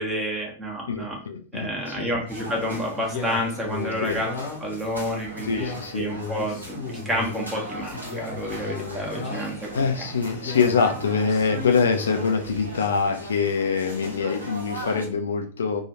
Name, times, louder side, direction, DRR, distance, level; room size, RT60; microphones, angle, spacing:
voice 1, 0.0-1.2 1.5-4.3 4.6-9.8, equal, 10° right, -2 dB, 1.0 m, -29 dB
voice 2, 0.9-2.1 4.0-4.2 5.4-6.1 8.5-8.8 9.1-9.3 9.7-15.8, left 5 dB, 70° left, 4 dB, 0.4 m, -25 dB
sound 1, 2.3-15.1, equal, 80° right, 0.8 m, -39 dB
Male speech man speaking, 3.0-4.8 5.4-7.3 7.9-9.6 10.3-12.3, left 4 dB, 45° left, 0.8 m, -35 dB
2.8 x 2.3 x 2.9 m, 0.41 s
figure-of-eight pair, 90°, 0 cm